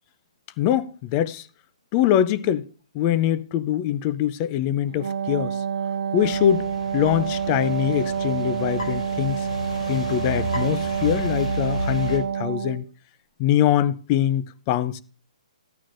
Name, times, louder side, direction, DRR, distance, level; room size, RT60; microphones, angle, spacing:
voice 1, 0.6-1.5 1.9-2.7 2.9-5.6 6.1-9.5 9.9-12.9 13.4-15.0, left 11 dB, 25° left, 0.4 m, -23 dB
Wind instrument woodwind instrument, 4.9-12.9, right 7 dB, 75° right, 0.7 m, -28 dB
sound 1, 6.2-12.2, left 1 dB, 80° left, 3.1 m, -32 dB
14.0 x 9.1 x 2.5 m
hypercardioid pair, 160°, 4 cm